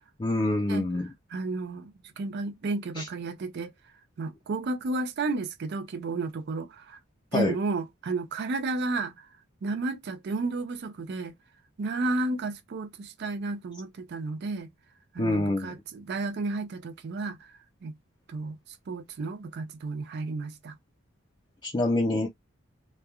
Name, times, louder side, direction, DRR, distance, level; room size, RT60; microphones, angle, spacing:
voice 1, 0.2-1.1 3.0-3.1 7.3-7.5 15.2-15.8 21.6-22.3, left 2 dB, 25° left, 0.5 m, -26 dB
voice 2, 1.3-3.7 4.2-7.0 7.3-9.3 9.6-11.3 11.8-14.7 15.1-17.5 17.8-17.9 18.3-18.6 18.9-20.7, right 3 dB, 55° right, 0.4 m, -32 dB
3.0 x 2.2 x 2.3 m
head